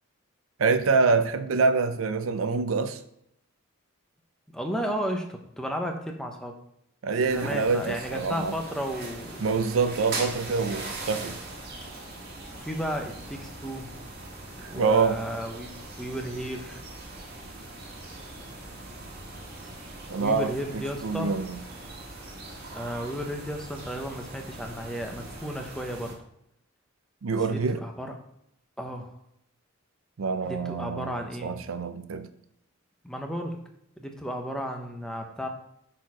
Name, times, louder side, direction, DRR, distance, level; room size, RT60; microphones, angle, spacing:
voice 1, 0.6-3.0 7.0-8.6 9.4-11.4 14.6-15.2 20.1-21.6 27.2-27.8 30.2-32.3, right 4 dB, 75° right, 0.5 m, -26 dB
voice 2, 4.5-6.6 7.2-9.4 12.6-13.9 14.7-16.8 20.2-21.3 22.7-26.1 27.5-28.1 28.8-29.1 30.5-31.6 33.0-33.6 34.0-35.5, equal, 5° left, 0.7 m, -33 dB
sound 1, 7.3-26.1, right 2 dB, 45° right, 1.5 m, -41 dB
6.4 x 4.3 x 4.7 m
head